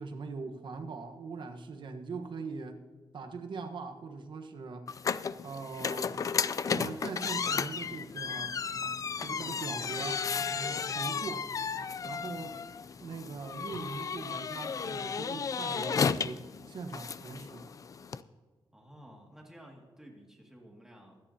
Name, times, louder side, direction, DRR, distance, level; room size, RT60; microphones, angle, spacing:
voice 1, 0.0-2.8 3.1-4.9 5.4-6.2 6.7-8.5 9.2-10.2 10.5-11.4 12.0-12.6 13.0-17.7, right 4 dB, 65° right, 5 dB, 1.2 m, -41 dB
sound 1, 4.9-18.2, left 6 dB, 40° left, 0.4 m, -34 dB
voice 2, 18.7-21.2, equal, 5° right, 0 dB, 2.2 m, -53 dB
24.0 x 9.9 x 2.9 m, 1.4 s
wide cardioid pair, 120°, 9 cm